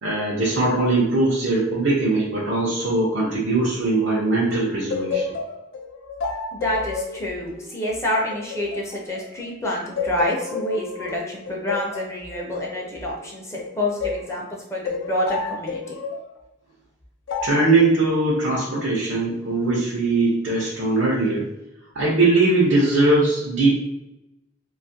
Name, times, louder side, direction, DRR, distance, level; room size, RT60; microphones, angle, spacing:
voice 1, 0.0-5.2 17.4-21.5 21.9-23.8, right 2 dB, 85° right, -6 dB, 0.6 m, -20 dB
sound 1, 4.5-9.5 10.0-14.3 14.8-16.3 17.3-17.7, left 4 dB, 90° left, 0.4 m, -30 dB
voice 2, 6.5-16.0, left 1 dB, 15° left, -2 dB, 0.4 m, -28 dB
2.4 x 2.4 x 2.6 m, 0.90 s
head